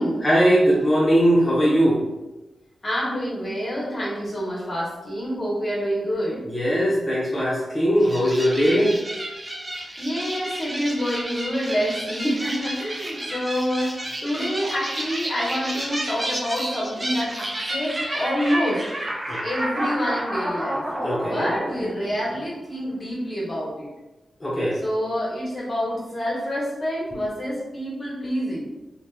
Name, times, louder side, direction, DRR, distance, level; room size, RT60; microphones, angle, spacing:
voice 1, 0.2-2.1 6.5-8.9 19.3-19.4 21.0-21.5 24.4-24.8, equal, 30° left, -6 dB, 0.9 m, -20 dB
voice 2, 2.8-6.4 9.8-18.8 19.4-20.8 21.2-23.9 24.8-28.8, equal, 50° left, -6 dB, 1.3 m, -27 dB
sound 1, 8.0-22.7, right 1 dB, 30° right, 0.6 m, -31 dB
2.8 x 2.5 x 2.3 m, 1.0 s
supercardioid pair, 40°, 0 cm